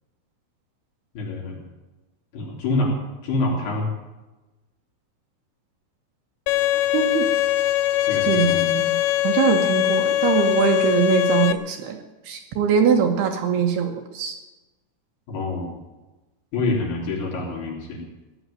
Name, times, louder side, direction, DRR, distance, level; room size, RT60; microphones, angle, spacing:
voice 1, 1.1-1.6 2.3-3.0 3.2-3.9 8.1-8.6 15.3-15.7 16.5-18.0, left 2 dB, 60° left, -1 dB, 5.2 m, -26 dB
Bowed string instrument, 6.5-11.5, left 13 dB, 80° left, 2.2 m, -21 dB
voice 2, 6.9-7.3 8.3-8.9 9.2-12.0 12.3-14.3, right 7 dB, 70° right, 4 dB, 2.8 m, -22 dB
16.5 x 9.7 x 9.1 m, 1.1 s
omnidirectional pair, 5.2 m